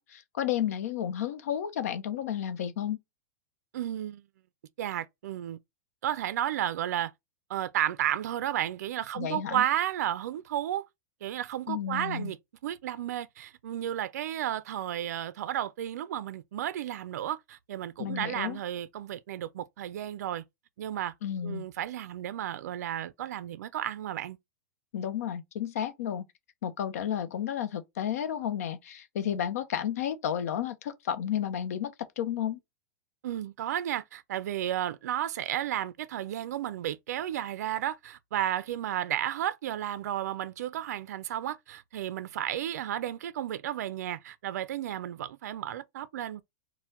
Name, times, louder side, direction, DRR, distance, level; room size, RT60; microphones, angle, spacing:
voice 1, 0.0-3.0 9.2-9.6 11.7-12.3 18.0-18.6 21.2-21.6 24.9-26.2 26.6-32.6, left 9 dB, 60° left, 0.7 m, -32 dB
voice 2, 3.7-4.2 4.8-5.6 6.0-7.1 7.5-10.9 11.2-12.4 12.6-20.4 20.8-21.1 21.4-24.4 29.2-29.4 33.2-46.4, right 11 dB, 70° right, 0.4 m, -33 dB
4.3 x 2.1 x 3.6 m
supercardioid pair, 175°, 9 cm